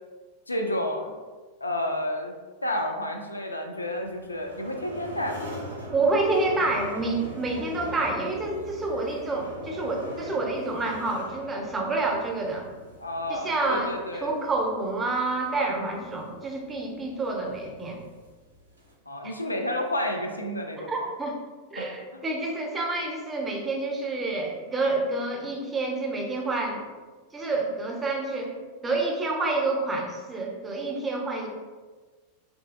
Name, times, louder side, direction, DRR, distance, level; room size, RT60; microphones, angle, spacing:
voice 1, 0.5-1.1 1.6-2.4 2.6-5.6 13.0-14.3 19.1-21.1 21.8-21.9, left 1 dB, 80° left, 3 dB, 0.3 m, -30 dB
sound 1, 4.0-18.9, equal, 85° right, 0.6 m, -41 dB
voice 2, 5.9-12.7 13.3-13.9 14.2-18.0 20.9-21.4 21.7-26.8 27.3-28.5 28.8-31.5, right 2 dB, 15° right, 1 dB, 0.5 m, -28 dB
3.3 x 2.5 x 2.4 m, 1.4 s
figure-of-eight pair, 90°, 0 cm